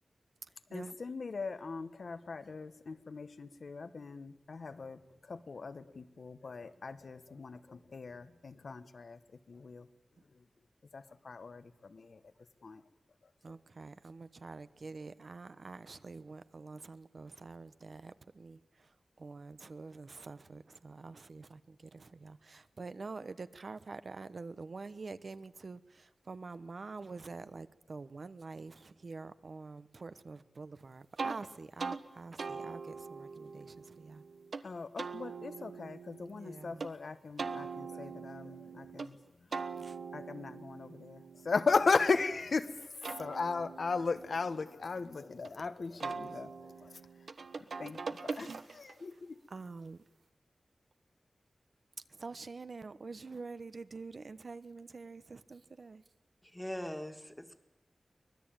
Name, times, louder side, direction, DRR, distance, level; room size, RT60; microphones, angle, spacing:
voice 1, 0.7-9.2 9.5-9.9 10.9-12.2 12.6-12.8 34.6-39.2 40.1-47.0 47.6-49.4, left 4 dB, 65° left, 11 dB, 1.2 m, -37 dB
voice 2, 13.4-34.2 36.3-36.9 39.7-40.0 49.1-49.2 49.5-50.0 52.1-56.0, right 4 dB, 55° right, 13 dB, 0.9 m, -47 dB
sound 1, 31.2-31.4 31.8-32.0 32.4-34.6 35.0-36.9 37.4-39.1 39.5-42.4 42.8-45.5 46.0-49.0, right 4 dB, 75° right, 1.3 m, -43 dB
voice 3, 56.4-57.6, left 1 dB, 10° left, 7 dB, 1.9 m, -41 dB
24.5 x 19.5 x 8.9 m, 0.98 s
wide cardioid pair, 110°, 0 cm